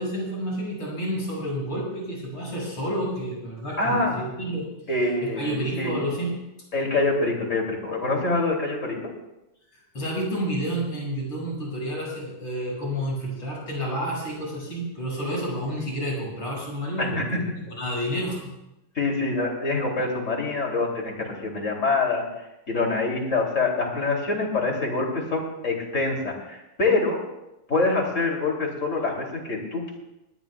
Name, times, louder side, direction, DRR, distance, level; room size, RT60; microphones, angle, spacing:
voice 1, 0.0-4.7 5.2-6.3 9.7-18.5, equal, 40° left, -3 dB, 6.8 m, -30 dB
voice 2, 3.8-4.2 4.9-5.9 6.7-9.0 17.0-17.4 18.9-22.3 22.7-27.2 27.7-30.0, left 3 dB, 25° left, 0 dB, 2.9 m, -25 dB
20.0 x 19.5 x 2.3 m, 0.92 s
omnidirectional pair, 3.7 m